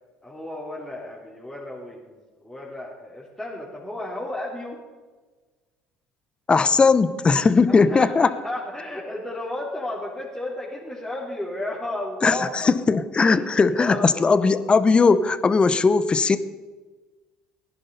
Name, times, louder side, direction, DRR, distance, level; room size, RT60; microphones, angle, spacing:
voice 1, 0.2-4.8 7.7-12.7 13.2-14.5, left 1 dB, 5° left, -7 dB, 3.6 m, -33 dB
voice 2, 6.5-8.3 12.2-16.4, left 4 dB, 25° left, 14 dB, 0.9 m, -18 dB
16.0 x 10.5 x 5.5 m, 1.3 s
hypercardioid pair, 65°, 4 cm